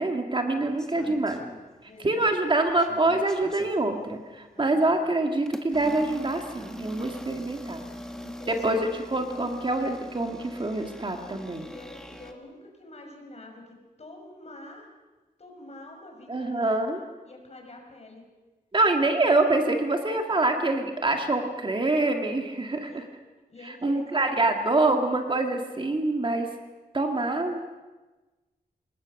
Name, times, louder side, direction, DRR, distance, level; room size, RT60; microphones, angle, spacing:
voice 1, 0.0-1.4 2.0-7.8 8.5-11.7 16.3-17.0 18.7-23.1 23.6-26.5 26.9-27.8, right 2 dB, 30° right, 4 dB, 2.1 m, -25 dB
sound 1, 0.6-2.1 2.4-3.8 4.4-4.6 5.4-12.3, equal, 5° left, 1.8 m, -42 dB
voice 2, 0.9-1.3 1.8-2.3 4.5-4.8 7.8-8.9 9.3-9.6 11.2-14.9 15.4-18.2 22.8-23.1 23.5-24.9 26.9-27.1, left 2 dB, 45° left, 2 dB, 5.4 m, -47 dB
26.5 x 20.0 x 6.6 m, 1.2 s
wide cardioid pair, 135°, 16 cm